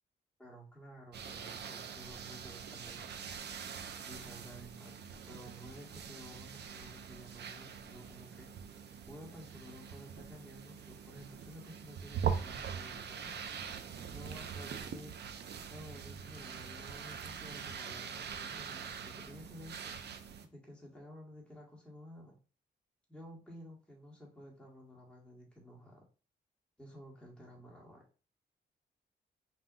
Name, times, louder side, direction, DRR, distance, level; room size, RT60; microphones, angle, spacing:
voice 1, 0.4-3.4 4.1-8.5 9.1-13.4 14.1-15.2 15.7-19.8 20.5-22.4 23.1-26.1 26.8-28.0, equal, 5° left, -3 dB, 1.9 m, -52 dB
sound 1, 1.1-20.5, right 7 dB, 70° right, 0.6 m, -43 dB
5.6 x 2.7 x 2.6 m, 0.36 s
cardioid pair, 110°, 18 cm